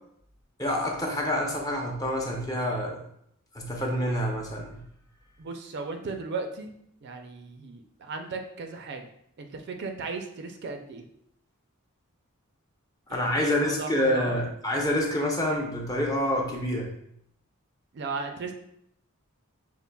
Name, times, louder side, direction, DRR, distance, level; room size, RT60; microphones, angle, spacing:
voice 1, 0.6-3.0 3.5-4.8 13.1-16.9, equal, 15° left, 0 dB, 0.5 m, -27 dB
voice 2, 5.4-6.7 7.0-9.1 9.4-11.1 13.1-14.5 17.9-18.5, right 4 dB, 50° right, 5 dB, 0.4 m, -36 dB
5.2 x 2.5 x 2.2 m, 0.71 s
head